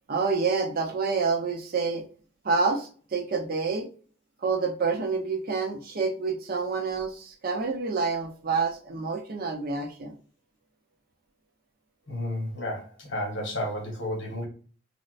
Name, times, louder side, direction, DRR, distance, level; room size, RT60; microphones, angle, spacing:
voice 1, 0.1-2.0 2.4-3.9 4.4-10.1, right 4 dB, 55° right, 0.7 m, -28 dB
voice 2, 12.1-14.5, left 1 dB, 70° left, 1.2 m, -32 dB
4.1 x 2.1 x 2.4 m
head